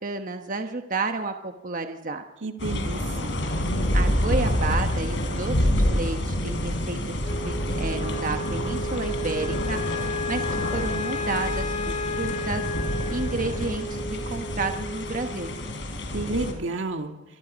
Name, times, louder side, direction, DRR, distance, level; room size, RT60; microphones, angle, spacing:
voice 1, 0.0-2.2 3.9-12.6 13.1-15.6, right 3 dB, 45° right, 6 dB, 1.2 m, -31 dB
voice 2, 2.4-3.4 16.1-17.2, right 2 dB, 85° right, 5 dB, 1.9 m, -31 dB
sound 1, 2.6-16.5, equal, 70° left, 5.1 m, -27 dB
Wind instrument woodwind instrument, 7.2-15.7, left 2 dB, 40° left, 2.2 m, -33 dB
26.5 x 23.5 x 5.3 m, 1.0 s
head